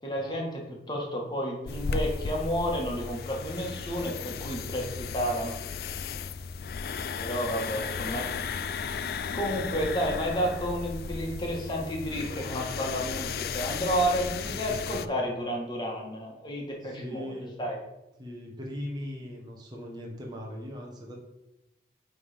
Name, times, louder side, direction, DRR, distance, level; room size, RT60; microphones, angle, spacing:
voice 1, 0.0-5.5 7.2-8.4 9.3-17.3 17.6-17.8, equal, 25° left, -1 dB, 1.6 m, -31 dB
sound 1, 1.7-15.1, left 5 dB, 55° left, 0.3 m, -35 dB
voice 2, 7.6-7.9 12.2-12.5 14.4-14.6 14.9-15.1 16.8-17.5 18.2-21.1, left 1 dB, 25° right, -2 dB, 1.1 m, -40 dB
9.5 x 3.6 x 5.1 m, 0.95 s
head